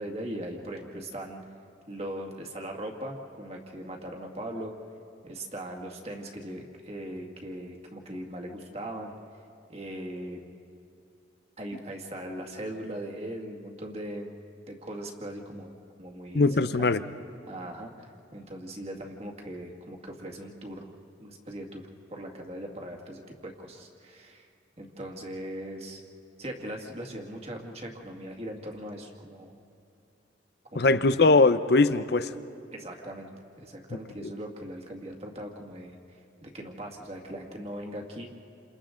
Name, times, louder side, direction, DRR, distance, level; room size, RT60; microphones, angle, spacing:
voice 1, 0.0-1.4 1.9-4.7 5.2-9.1 9.7-10.4 11.6-14.3 14.7-16.5 16.8-16.9 17.5-20.8 21.2-21.8 22.1-24.5 24.8-26.0 26.4-29.6 30.7-31.2 32.7-33.3 33.6-36.0 36.4-38.3, right 1 dB, 35° right, 1 dB, 2.0 m, -39 dB
voice 2, 16.3-17.0 30.7-32.3 33.9-34.3, left 3 dB, 60° left, 13 dB, 0.7 m, -21 dB
29.5 x 27.5 x 3.8 m, 2.7 s
head